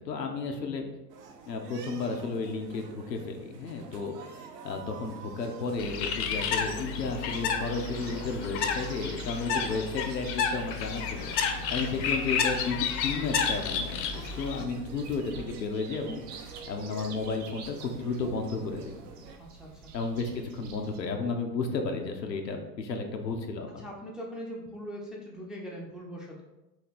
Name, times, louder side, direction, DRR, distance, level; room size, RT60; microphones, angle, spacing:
voice 1, 0.1-0.9 1.5-19.0 19.9-23.9, left 3 dB, 90° left, 3 dB, 0.7 m, -33 dB
sound 1, 1.1-19.4, right 6 dB, 80° right, 0.6 m, -49 dB
Bird, 5.8-14.6, left 6 dB, 45° left, 0.6 m, -31 dB
sound 2, 7.3-21.0, right 6 dB, 45° right, 0.8 m, -48 dB
voice 2, 19.4-19.9 23.8-26.4, equal, ahead, -3 dB, 0.3 m, -41 dB
3.1 x 2.8 x 4.0 m, 0.99 s
hypercardioid pair, 80°, 48 cm